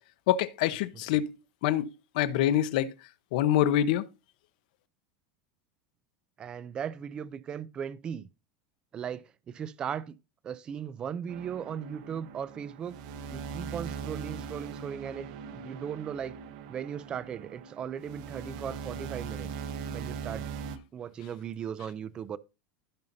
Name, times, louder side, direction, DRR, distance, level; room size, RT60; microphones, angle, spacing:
voice 1, 0.3-1.3 1.6-1.9 2.1-2.9 3.3-4.1, left 11 dB, 60° left, 0.9 m, -25 dB
voice 2, 6.4-8.3 8.9-10.1 10.4-13.0 13.3-16.4 16.7-19.6 19.9-20.5 20.9-22.4, right 8 dB, 20° right, 0.4 m, -37 dB
sound 1, 11.3-20.8, right 6 dB, 55° right, 1.1 m, -40 dB
15.5 x 5.5 x 2.7 m
supercardioid pair, 180°, 5 cm